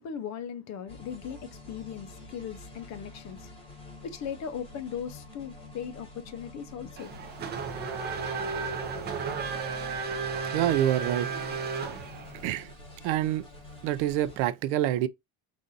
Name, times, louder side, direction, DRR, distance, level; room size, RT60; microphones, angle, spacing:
voice 1, 0.0-3.5 4.0-7.1, left 8 dB, 35° left, 0.5 m, -38 dB
sound 1, 0.9-14.5, left 2 dB, 10° left, 1.0 m, -48 dB
Race car auto racing / Accelerating revving vroom, 7.0-12.4, right 5 dB, 20° right, 0.4 m, -33 dB
voice 2, 10.5-11.3 12.4-12.7 13.0-13.4 13.8-15.1, right 13 dB, 70° right, 0.5 m, -26 dB
4.1 x 2.5 x 3.8 m
cardioid pair, 165°, 48 cm